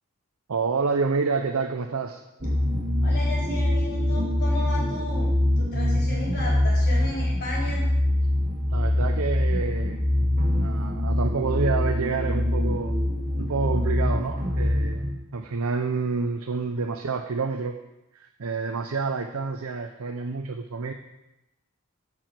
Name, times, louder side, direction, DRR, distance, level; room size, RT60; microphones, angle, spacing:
voice 1, 0.5-2.2 8.7-10.1 10.6-13.0 13.4-15.1 15.3-17.8 18.1-20.9, right 4 dB, 75° right, 5 dB, 0.6 m, -28 dB
sound 1, 2.4-15.1, left 1 dB, 35° right, 1.6 m, -24 dB
voice 2, 3.0-7.8, left 1 dB, 50° left, -5 dB, 4.2 m, -34 dB
10.5 x 4.8 x 7.6 m, 0.93 s
head